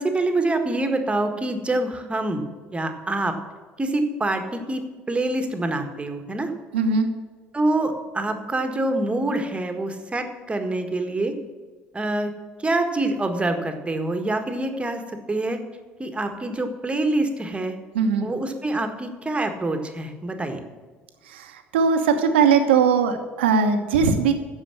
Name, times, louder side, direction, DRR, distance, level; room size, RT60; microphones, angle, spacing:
voice 1, 0.0-2.4 2.7-3.3 3.8-6.5 7.5-11.3 11.9-12.3 12.6-15.0 15.3-15.6 16.0-17.8 18.2-20.6, right 2 dB, 20° right, 6 dB, 1.6 m, -25 dB
voice 2, 6.7-7.1 17.9-18.3 21.3-24.3, right 5 dB, 80° right, 6 dB, 1.1 m, -20 dB
9.9 x 7.0 x 7.2 m, 1.5 s
hypercardioid pair, 60°, 6 cm